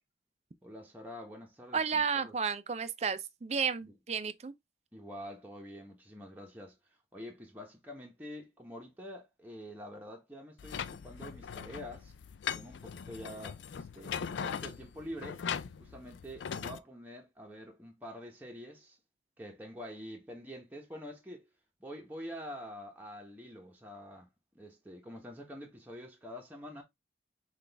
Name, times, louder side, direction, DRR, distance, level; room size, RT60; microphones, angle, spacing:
voice 1, 0.6-2.3 4.9-6.8 7.1-12.1 12.5-15.4 15.8-19.0 19.4-21.5 21.8-24.3 24.5-26.8, equal, 10° right, 0.9 m, -46 dB
voice 2, 1.7-4.5, right 6 dB, 35° right, 0.4 m, -32 dB
sound 1, 10.6-16.8, left 7 dB, 90° left, 0.4 m, -40 dB
6.0 x 2.4 x 3.4 m
head